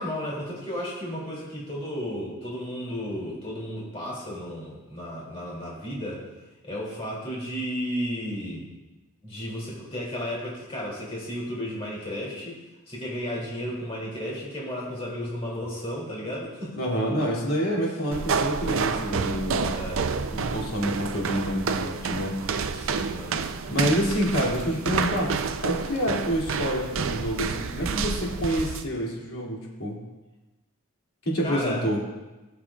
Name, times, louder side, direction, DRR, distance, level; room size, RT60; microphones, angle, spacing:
voice 1, 0.0-6.2 6.6-8.7 9.2-12.6 12.9-16.8 19.7-20.1 22.7-23.4 31.4-31.8, equal, 30° left, -5 dB, 2.7 m, -33 dB
voice 2, 16.8-19.7 20.3-22.7 23.7-25.3 25.6-30.0 31.2-32.0, equal, 70° left, -5 dB, 2.8 m, -27 dB
sound 1, 18.1-28.9, right 5 dB, 65° right, 0.5 m, -29 dB
17.5 x 7.4 x 2.4 m, 1.1 s
head